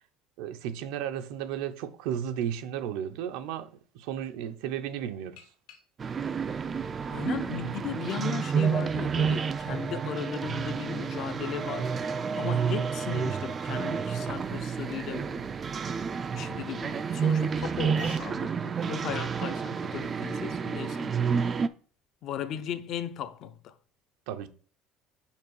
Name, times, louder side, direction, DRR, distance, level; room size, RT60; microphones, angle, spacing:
voice 1, 0.4-5.4 24.3-24.5, right 9 dB, 75° right, 0.7 m, -34 dB
sound 1, 5.4-6.2 6.9-7.9 8.6-8.7 9.8-10.9 12.6-12.7 13.1-13.2 13.4-13.5 13.9-14.2 15.2-15.3 15.8-15.9 17.0-17.1 17.3-17.7 17.9-20.2, left 7 dB, 90° left, 1.9 m, -52 dB
sound 2, 6.0-21.7, right 6 dB, 20° right, 0.3 m, -30 dB
voice 2, 7.1-15.5 16.3-21.2 22.2-23.7, left 9 dB, 45° left, 0.5 m, -37 dB
5.7 x 4.5 x 4.7 m
cardioid pair, 170°, 0 cm